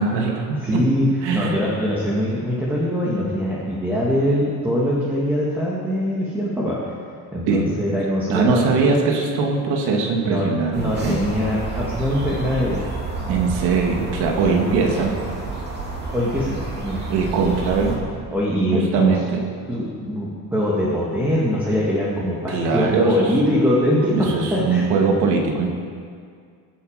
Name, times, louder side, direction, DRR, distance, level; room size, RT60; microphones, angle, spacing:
voice 1, 0.0-0.8 1.2-1.6 7.5-7.8 8.3-11.3 13.3-15.2 17.1-18.0 18.7-19.4 22.5-23.3 24.1-25.7, right 4 dB, 75° right, 1 dB, 2.2 m, -21 dB
voice 2, 0.6-1.1 1.3-6.9 7.3-8.7 10.1-12.8 14.5-14.6 16.1-17.0 18.3-19.2 19.7-24.8, equal, 5° right, -6 dB, 1.7 m, -22 dB
sound 1, 10.7-18.0, right 3 dB, 25° right, 2.5 m, -30 dB
23.0 x 8.4 x 5.0 m, 2.1 s
cardioid pair, 180°, 39 cm